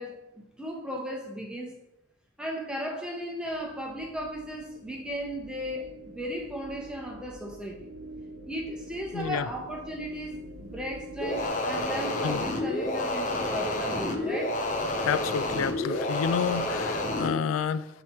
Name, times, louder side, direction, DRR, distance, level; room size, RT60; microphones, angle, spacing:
voice 1, 0.0-1.7 2.4-7.8 8.5-14.6, equal, 5° right, 0 dB, 0.8 m, -36 dB
sound 1, 3.5-11.5, right 1 dB, 85° right, 0.9 m, -46 dB
voice 2, 9.1-9.5 12.2-12.4 15.0-17.9, left 7 dB, 85° left, 16 dB, 0.3 m, -29 dB
sound 2, 11.2-17.3, left 1 dB, 40° left, 0.6 m, -29 dB
7.5 x 3.0 x 4.3 m, 0.91 s
head